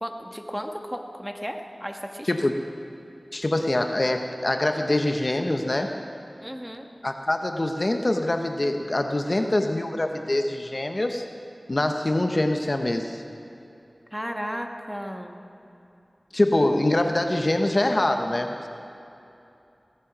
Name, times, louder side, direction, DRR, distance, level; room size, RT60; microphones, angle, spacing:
voice 1, 0.0-2.3 6.4-6.9 14.1-15.4, equal, 5° right, 4 dB, 1.4 m, -34 dB
voice 2, 2.2-2.6 3.3-5.9 7.0-11.2 11.7-13.2 16.3-18.7, left 1 dB, 45° left, 5 dB, 1.0 m, -24 dB
17.0 x 14.0 x 6.0 m, 2.8 s
wide cardioid pair, 55°, 0 cm